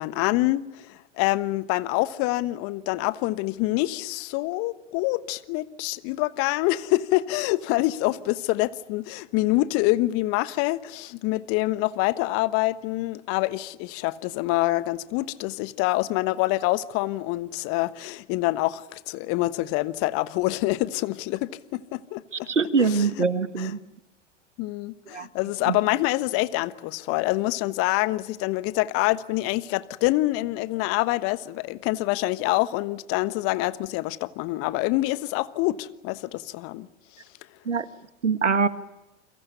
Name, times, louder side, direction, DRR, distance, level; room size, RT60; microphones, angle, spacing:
voice 1, 0.0-22.5 22.8-23.3 23.6-23.7 24.6-36.9, left 18 dB, 40° left, 1.3 m, -26 dB
voice 2, 22.5-23.8 25.1-25.3 25.7-25.8 37.7-37.9 38.2-38.7, right 5 dB, 85° right, 1.8 m, -23 dB
29.0 x 23.5 x 6.8 m
figure-of-eight pair, 95°, 35 cm